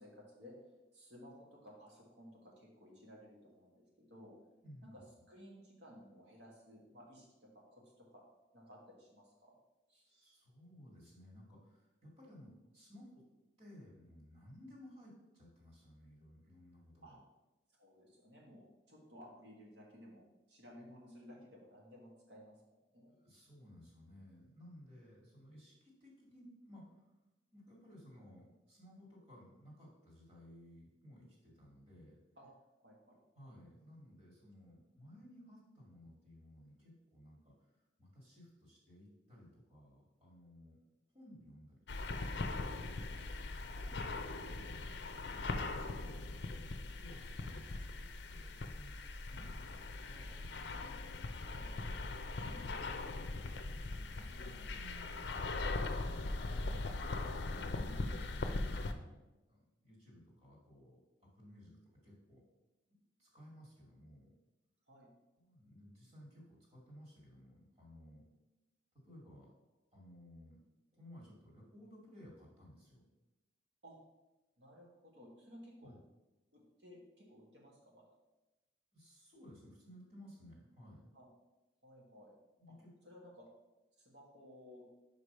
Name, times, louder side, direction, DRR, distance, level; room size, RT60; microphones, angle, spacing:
voice 1, 0.0-4.4 4.8-8.2 8.5-9.6 9.9-10.1 17.0-17.2 17.7-23.1 32.4-32.5 32.8-33.2 43.1-43.2 43.6-44.0 51.4-51.7 64.9-65.1 73.8-74.0 74.6-75.9 76.5-78.1 81.1-81.3 81.8-82.4 82.7-82.8 83.0-83.5 84.0-84.8, equal, 70° right, -2 dB, 1.8 m, -57 dB
voice 2, 4.6-5.0 10.1-13.2 13.6-17.2 23.1-27.1 27.5-32.2 33.4-37.5 38.0-40.8 41.1-43.0 44.5-44.8 45.2-46.7 47.0-49.0 49.3-50.5 51.7-55.1 56.0-56.2 56.5-59.2 59.5-61.0 61.2-62.4 62.9-64.3 65.4-68.2 69.0-69.5 69.9-70.6 70.9-73.0 75.8-76.0 78.9-81.0 82.6-82.9, equal, 35° right, -4 dB, 2.3 m, -58 dB
sound 1, 41.9-58.9, left 2 dB, 65° left, 0.5 m, -40 dB
5.2 x 4.9 x 5.5 m, 1.0 s
head